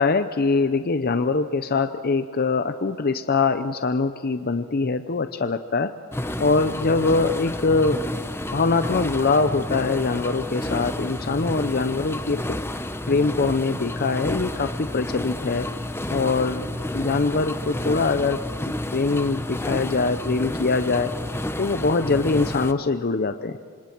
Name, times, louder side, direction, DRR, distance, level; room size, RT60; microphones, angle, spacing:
voice 1, 0.0-5.9 6.4-8.0 8.5-12.4 13.1-15.7 16.1-16.7 16.9-18.4 18.7-21.1 21.6-23.6, left 3 dB, 45° left, 9 dB, 0.6 m, -23 dB
sound 1, 6.1-22.7, left 1 dB, 10° left, 0.7 m, -30 dB
27.0 x 26.5 x 4.6 m, 2.1 s
head